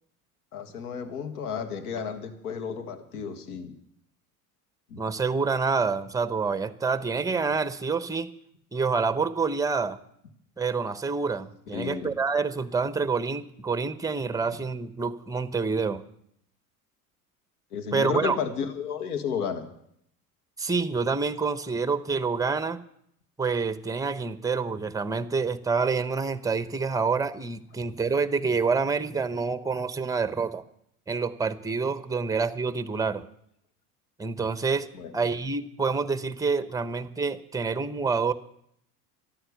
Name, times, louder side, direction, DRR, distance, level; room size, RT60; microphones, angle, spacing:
voice 1, 0.5-3.7 4.9-5.0 11.7-12.2 14.5-14.6 17.7-19.7 34.9-35.1, left 6 dB, 75° left, 7 dB, 2.0 m, -32 dB
voice 2, 5.0-8.3 8.7-10.0 10.6-16.0 17.9-18.4 20.6-22.8 23.4-30.6 31.1-33.2 34.2-38.3, right 4 dB, 5° right, 13 dB, 1.0 m, -27 dB
14.5 x 11.5 x 6.8 m, 0.72 s
hypercardioid pair, 75°, 46 cm